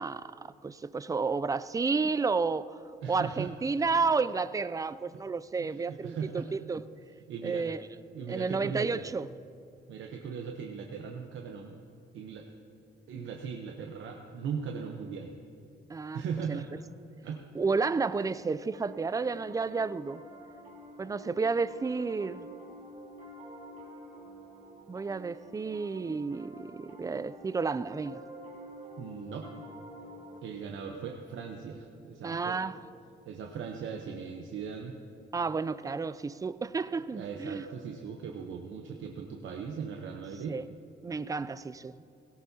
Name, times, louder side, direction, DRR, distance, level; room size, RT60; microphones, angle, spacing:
voice 1, 0.0-2.7 3.1-6.8 7.4-7.8 8.3-9.3 15.9-16.2 16.5-16.6 17.5-20.2 21.0-22.5 24.9-28.2 32.2-32.8 35.3-37.7 40.5-40.7 41.0-42.0, right 4 dB, 15° right, 0.4 m, -31 dB
voice 2, 3.0-3.5 5.6-6.5 7.3-7.6 8.1-9.0 9.9-11.8 12.1-12.5 13.1-15.3 16.1-16.7 17.2-17.4 29.0-29.6 30.4-32.6 33.3-35.0 37.1-40.6, right 6 dB, 75° right, 1.0 m, -38 dB
Piano, 17.9-30.4, equal, 40° right, 3.9 m, -49 dB
17.0 x 16.5 x 2.8 m
cardioid pair, 90°, 20 cm